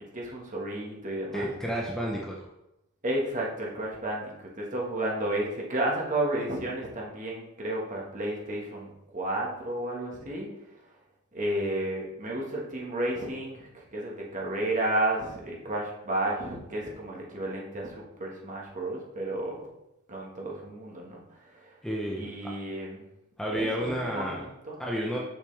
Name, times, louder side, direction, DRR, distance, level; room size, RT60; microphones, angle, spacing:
voice 1, 0.1-1.5 3.0-10.5 11.3-19.7 20.1-21.2 21.5-21.6 22.1-23.0 23.4-24.8, right 1 dB, 35° right, -2 dB, 1.5 m, -32 dB
voice 2, 1.3-2.5 21.8-22.5 23.4-24.4 24.8-25.2, equal, ahead, -2 dB, 0.6 m, -31 dB
6.5 x 5.9 x 3.3 m, 0.88 s
head